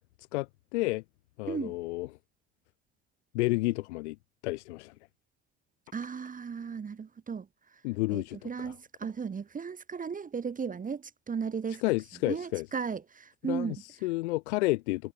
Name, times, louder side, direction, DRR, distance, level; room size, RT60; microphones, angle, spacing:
voice 1, 0.3-1.0 1.4-2.1 3.3-4.2 4.4-4.9 7.8-8.7 11.8-12.7 13.4-13.8 14.0-15.1, left 21 dB, 85° left, 0.5 m, -30 dB
voice 2, 1.5-1.8 5.9-7.5 8.1-11.8 12.3-13.8, right 6 dB, 25° right, 0.8 m, -35 dB
hypercardioid pair, 60°, 33 cm